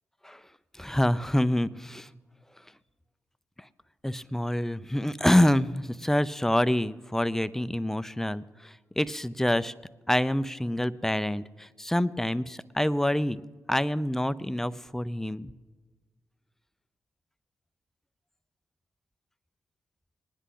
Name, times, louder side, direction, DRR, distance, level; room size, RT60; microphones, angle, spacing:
voice 1, 0.7-2.1 3.6-3.7 4.0-9.7 10.1-13.4 13.7-15.5, left 1 dB, 5° left, 15 dB, 0.5 m, -27 dB
19.5 x 10.0 x 3.8 m, 1.3 s
supercardioid pair, 50°, 6 cm